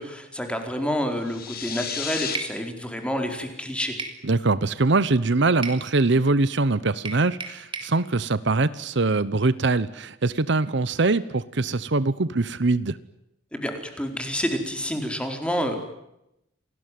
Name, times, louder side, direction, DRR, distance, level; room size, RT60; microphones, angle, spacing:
voice 1, 0.0-3.9 13.5-15.7, equal, 5° left, 5 dB, 4.4 m, -28 dB
sound 1, 1.2-2.4, left 7 dB, 55° left, 3.5 m, -32 dB
sound 2, 2.3-2.6 4.0-4.2 5.6-5.8 7.0-7.9, right 4 dB, 25° right, 3.6 m, -33 dB
voice 2, 4.2-13.0, right 3 dB, 70° right, 17 dB, 0.9 m, -23 dB
28.5 x 19.5 x 9.3 m, 0.86 s
head